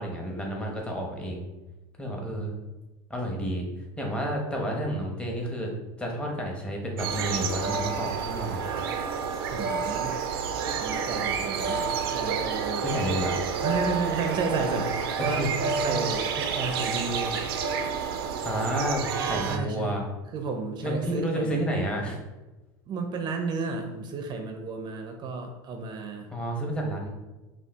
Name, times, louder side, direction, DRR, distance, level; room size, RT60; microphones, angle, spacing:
voice 1, 0.0-1.5 2.0-2.5 3.1-3.7 4.0-5.7 6.0-8.8 12.8-13.4 15.2-15.5 15.8-15.9 18.4-20.0 20.8-22.2 26.3-27.1, equal, 10° left, -1 dB, 1.0 m, -30 dB
sound 1, 7.0-19.6, right 6 dB, 90° right, 0.5 m, -29 dB
voice 2, 9.5-10.2 10.8-12.9 13.6-17.4 19.5-20.0 20.3-21.7 22.9-26.3, right 4 dB, 35° right, 4 dB, 0.6 m, -32 dB
5.5 x 2.4 x 3.5 m, 1.1 s
supercardioid pair, 115°, 12 cm